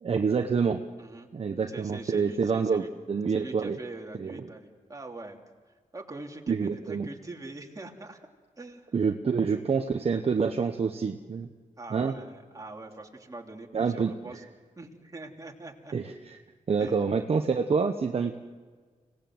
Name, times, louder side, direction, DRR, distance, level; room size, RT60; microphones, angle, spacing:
voice 1, 0.0-0.8 1.3-3.8 4.2-4.4 6.5-7.1 8.9-11.5 11.9-12.1 13.7-14.1 15.9-16.4 16.7-18.4, right 5 dB, 50° right, 5 dB, 1.1 m, -27 dB
voice 2, 1.0-1.3 1.7-2.9 3.3-5.4 5.9-8.3 8.6-8.9 11.8-14.4 14.8-15.9 16.8-17.0, right 2 dB, 25° right, 1 dB, 3.0 m, -43 dB
25.5 x 18.5 x 7.9 m, 1.5 s
cardioid pair, 85°, 13 cm